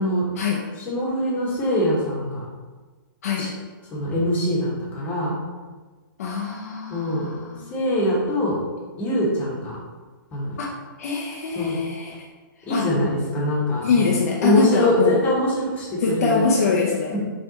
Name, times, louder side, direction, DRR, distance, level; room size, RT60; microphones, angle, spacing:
voice 1, 0.8-2.4 3.3-3.5 3.9-5.3 6.9-7.3 7.7-8.6 9.0-9.8 10.3-10.6 11.5-11.8 12.7-16.5 17.1-17.2, left 1 dB, 15° left, -6 dB, 1.3 m, -23 dB
voice 2, 6.2-7.7 10.6-10.7 11.0-12.2 12.7-12.9 13.8-15.2 16.0-17.2, left 4 dB, 40° left, -2 dB, 0.7 m, -23 dB
6.9 x 3.3 x 4.1 m, 1.3 s
hypercardioid pair, 165°, 12 cm